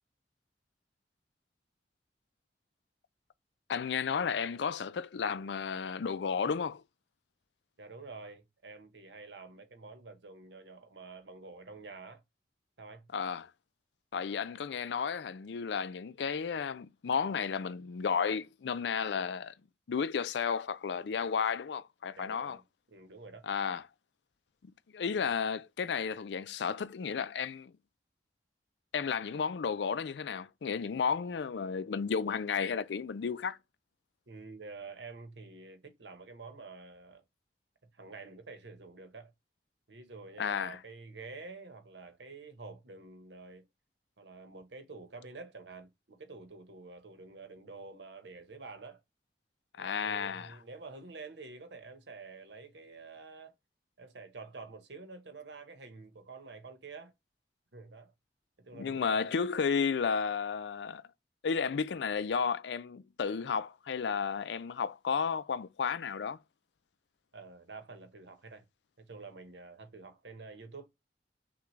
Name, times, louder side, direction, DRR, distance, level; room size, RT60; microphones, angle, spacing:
voice 1, 3.7-6.8 13.1-13.5 14.1-19.5 19.9-22.6 23.4-23.8 24.6-27.7 28.9-33.6 40.4-40.8 49.8-50.6 58.7-61.0 61.4-66.4, left 6 dB, 80° left, 0.4 m, -33 dB
voice 2, 7.8-12.2 12.8-13.1 22.2-22.6 22.9-23.5 34.3-37.2 37.9-39.3 39.9-43.6 44.2-49.0 49.8-53.5 54.0-57.1 57.7-58.1 58.6-59.2 67.3-68.6 69.0-70.9, right 3 dB, 80° right, 1.0 m, -48 dB
5.9 x 2.3 x 3.1 m
head